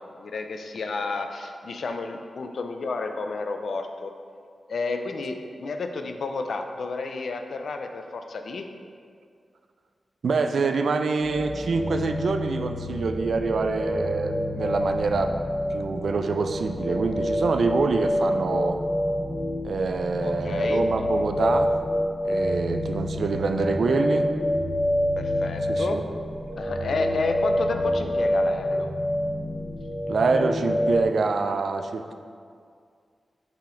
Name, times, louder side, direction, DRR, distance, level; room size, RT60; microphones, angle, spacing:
voice 1, 0.0-4.1 4.7-8.7 20.2-20.8 22.7-22.8 25.2-26.0 26.6-28.9, left 3 dB, 65° left, 5 dB, 0.4 m, -31 dB
voice 2, 10.2-15.3 15.7-18.8 19.6-21.7 22.2-24.3 25.7-26.0 30.1-32.1, right 4 dB, 60° right, 7 dB, 0.3 m, -26 dB
sound 1, 11.2-31.0, equal, 10° left, 1.6 m, -27 dB
5.6 x 5.0 x 3.8 m, 2.2 s
wide cardioid pair, 180°, 0 cm